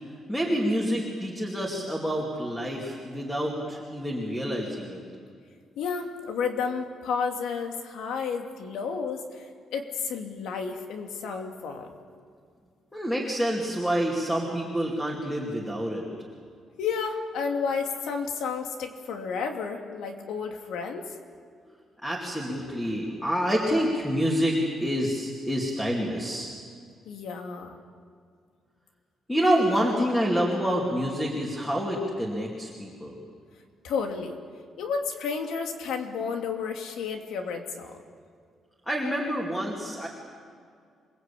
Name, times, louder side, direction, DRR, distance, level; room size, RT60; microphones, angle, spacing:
voice 1, 0.3-5.0 12.9-16.1 22.0-26.5 29.3-33.1 38.9-40.1, equal, 5° left, -2 dB, 2.6 m, -27 dB
voice 2, 5.8-9.5 9.7-11.9 16.8-21.1 27.1-27.8 33.8-34.4 34.8-38.0, left 5 dB, 85° left, 4 dB, 2.8 m, -31 dB
28.0 x 20.5 x 8.6 m, 2.2 s
cardioid pair, 180°, 0 cm